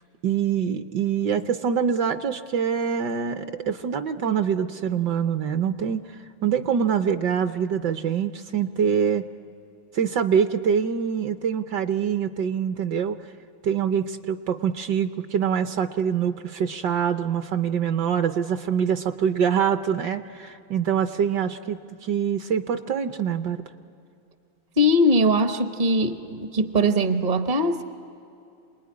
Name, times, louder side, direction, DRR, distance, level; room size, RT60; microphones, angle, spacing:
voice 1, 0.2-6.0 6.4-9.2 9.9-13.2 13.6-23.6, right 7 dB, 65° right, 8 dB, 1.3 m, -24 dB
voice 2, 24.8-27.8, equal, 40° right, 7 dB, 0.6 m, -21 dB
28.0 x 20.5 x 9.7 m, 2.7 s
omnidirectional pair, 2.2 m